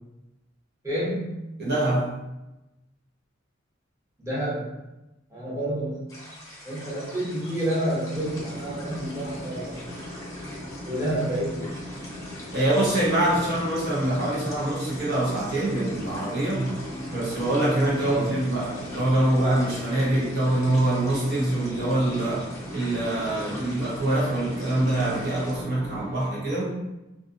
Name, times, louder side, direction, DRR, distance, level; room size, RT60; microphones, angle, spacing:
voice 1, 0.8-1.3 4.2-4.7 5.3-6.0 6.6-9.7 10.9-11.7 18.0-18.3, right 1 dB, 15° right, -9 dB, 0.8 m, -29 dB
voice 2, 1.6-2.2 12.5-16.8 17.1-22.5 22.7-26.7, right 1 dB, 55° right, -6 dB, 0.8 m, -24 dB
sound 1, 6.1-25.6, left 1 dB, 15° left, 0.7 m, -45 dB
sound 2, 8.1-26.1, equal, 85° right, 1.3 m, -39 dB
sound 3, 13.2-22.1, left 1 dB, 50° left, 0.4 m, -44 dB
2.6 x 2.4 x 2.5 m, 0.98 s
head